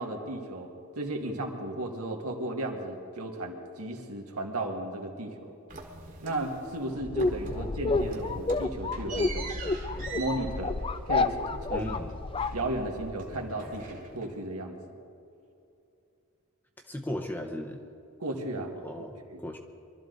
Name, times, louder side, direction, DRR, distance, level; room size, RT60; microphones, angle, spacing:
voice 1, 0.0-5.5 6.2-9.5 10.1-10.8 11.0-11.9 12.5-15.0 18.2-18.7 19.3-19.4, right 1 dB, 90° right, 2 dB, 1.8 m, -35 dB
sound 1, 5.7-6.9 7.2-7.7 7.9-12.9 13.2-14.5, right 4 dB, 35° right, 1.5 m, -44 dB
sound 2, 7.0-13.2, left 3 dB, 25° left, 0.3 m, -30 dB
voice 2, 11.7-12.2 16.9-17.8 18.8-19.6, left 1 dB, 10° left, 4 dB, 0.8 m, -37 dB
23.0 x 13.0 x 4.0 m, 2.6 s
head